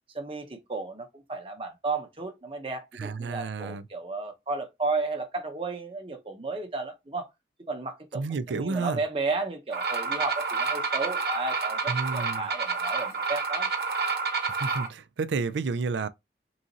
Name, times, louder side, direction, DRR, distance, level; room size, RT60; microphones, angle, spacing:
voice 1, 0.1-7.3 7.7-13.7, right 3 dB, 30° right, 0.8 m, -33 dB
voice 2, 3.0-3.9 8.1-9.0 11.9-12.5 14.6-16.1, right 4 dB, 90° right, 0.4 m, -31 dB
sound 1, 9.7-14.9, right 4 dB, 60° right, 0.9 m, -29 dB
3.9 x 2.5 x 4.0 m
head